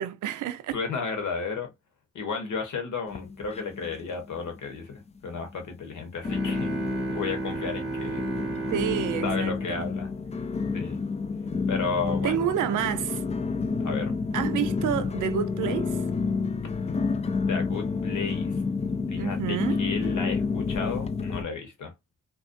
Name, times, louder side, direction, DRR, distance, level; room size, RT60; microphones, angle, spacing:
voice 1, 0.0-0.7 8.7-9.9 12.2-13.2 14.3-16.0 19.1-19.8, right 10 dB, 70° right, 0.5 m, -29 dB
voice 2, 0.7-1.7 2.1-6.7 7.1-8.2 9.2-10.2 10.7-11.0 11.7-12.5 13.8-14.2 17.5-18.5 19.1-21.9, left 5 dB, 65° left, 1.0 m, -33 dB
sound 1, 3.1-4.0 4.3-4.9 5.4-5.5 6.2-21.4, left 4 dB, 20° left, 0.3 m, -29 dB
sound 2, 6.2-10.9, right 3 dB, ahead, 1.0 m, -34 dB
2.4 x 2.1 x 2.5 m
hypercardioid pair, 40°, 33 cm